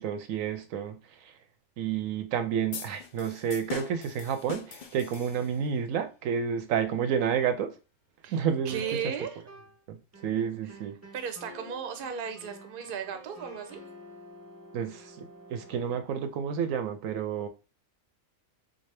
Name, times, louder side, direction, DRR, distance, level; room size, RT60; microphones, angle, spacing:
voice 1, 0.0-1.3 1.8-7.8 8.3-8.8 9.9-10.0 10.2-11.0 14.7-17.5, right 7 dB, 80° right, 1.0 m, -30 dB
sound 1, 2.7-5.8, left 7 dB, 70° left, 0.4 m, -42 dB
voice 2, 8.2-9.4 11.1-13.8, right 7 dB, 55° right, 0.7 m, -35 dB
sound 2, 8.7-9.8 10.1-16.0, right 1 dB, 15° right, 0.6 m, -49 dB
3.6 x 2.7 x 3.3 m
omnidirectional pair, 1.4 m